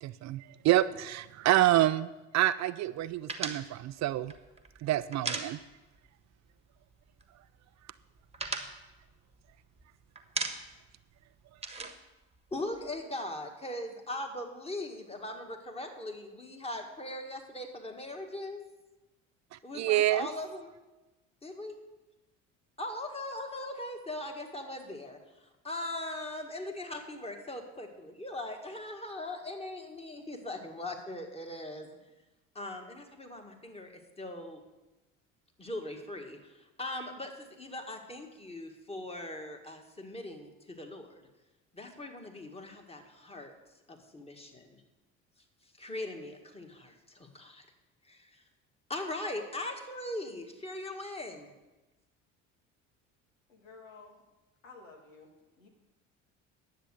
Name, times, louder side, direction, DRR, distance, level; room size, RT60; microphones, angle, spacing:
voice 1, 0.0-4.3 4.8-5.6 19.5-20.3, right 14 dB, 45° right, 15 dB, 0.4 m, -28 dB
sound 1, 3.3-6.1 6.3-6.5 6.8-7.5 7.8-9.8 10.2-10.9 11.2-13.0, right 4 dB, 15° right, 1.3 m, -38 dB
voice 2, 12.5-18.6 19.6-20.7 21.4-21.8 22.8-32.0 32.6-34.6 35.6-41.3 41.7-43.5 43.9-44.8 45.8-47.7 48.0-48.4 48.9-51.5, left 1 dB, 15° left, 4 dB, 1.9 m, -40 dB
voice 3, 53.5-54.2 54.6-55.3 55.6-55.7, left 4 dB, 90° left, 2 dB, 1.8 m, -52 dB
10.0 x 7.4 x 6.4 m, 1.1 s
hypercardioid pair, 65°, 38 cm